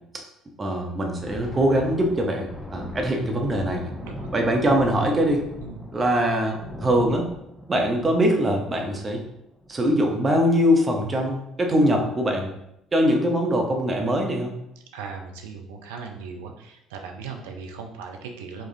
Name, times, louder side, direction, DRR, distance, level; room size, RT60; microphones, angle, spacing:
voice 1, 0.6-3.9 4.3-5.4 5.9-7.3 7.7-9.2 9.7-12.5 12.9-14.5, equal, 30° right, 2 dB, 0.8 m, -22 dB
Thunder, 1.1-10.1 10.4-10.6 11.0-11.3 11.9-12.3, left 1 dB, 10° left, 0.7 m, -40 dB
voice 2, 14.9-18.7, right 5 dB, 70° right, 3 dB, 0.4 m, -38 dB
4.9 x 2.4 x 2.6 m, 0.80 s
figure-of-eight pair, 55°, 0 cm